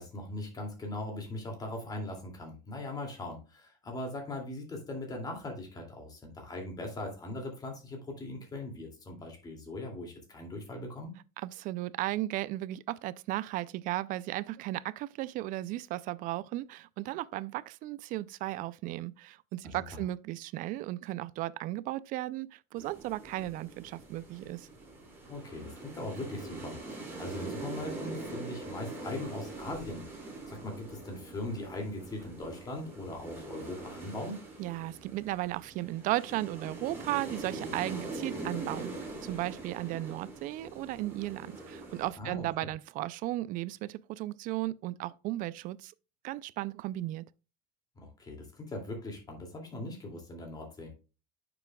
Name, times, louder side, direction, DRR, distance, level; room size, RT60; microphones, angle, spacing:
voice 1, 0.0-11.1 19.7-20.0 25.3-30.1 30.5-34.4 42.2-42.7 48.0-50.9, left 2 dB, 20° left, 2.4 m, -40 dB
voice 2, 11.4-24.7 34.6-45.9 46.2-47.2, right 16 dB, 45° right, 0.4 m, -35 dB
sound 1, 22.8-42.1, right 2 dB, 10° right, 4.5 m, -43 dB
9.3 x 6.9 x 2.3 m
cardioid pair, 155°, 19 cm